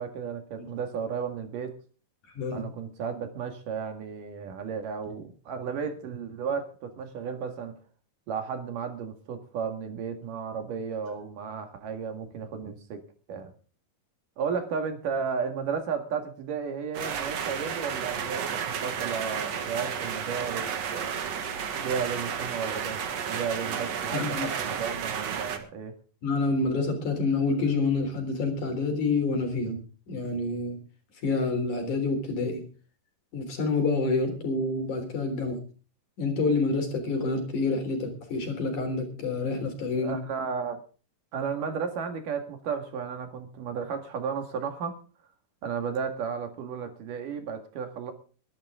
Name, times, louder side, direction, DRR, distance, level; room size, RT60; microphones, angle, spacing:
voice 1, 0.0-1.7 2.5-7.8 8.3-13.0 13.3-13.5 14.4-21.1 21.8-23.0 23.3-25.9 40.0-40.8 41.3-45.0 45.6-48.1, right 6 dB, 75° right, 7 dB, 3.6 m, -33 dB
sound 1, 16.9-25.6, right 7 dB, 55° right, 2.5 m, -32 dB
voice 2, 24.1-24.5 26.2-29.8 30.1-30.8 31.2-32.6 33.3-35.6 36.2-40.2, left 3 dB, 65° left, 5 dB, 5.0 m, -28 dB
22.0 x 12.0 x 3.7 m, 0.38 s
omnidirectional pair, 3.8 m